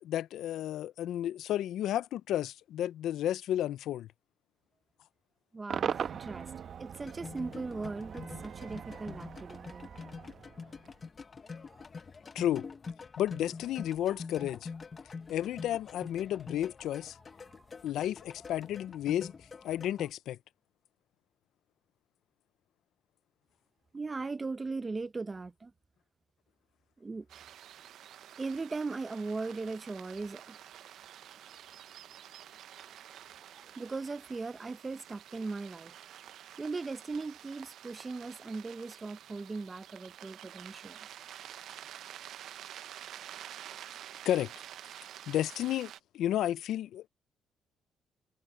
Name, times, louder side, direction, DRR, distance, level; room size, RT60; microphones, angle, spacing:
voice 1, 0.0-4.1 12.3-12.7 13.2-14.7 15.3-17.2 17.8-19.3 19.6-20.4 44.2-44.5 45.3-47.0, left 12 dB, 80° left, 0.5 m, -32 dB
voice 2, 5.5-6.5 6.8-9.9 23.9-25.7 27.0-27.3 28.4-30.6 33.8-35.9 36.6-41.0, right 3 dB, 25° right, 0.8 m, -38 dB
Cheering / Crowd / Fireworks, 5.7-11.0, right 8 dB, 55° right, 1.1 m, -40 dB
sound 1, 7.0-20.1, left 4 dB, 35° left, 1.1 m, -46 dB
sound 2, 27.3-46.0, right 11 dB, 75° right, 0.7 m, -49 dB
cardioid pair, 90°, 0 cm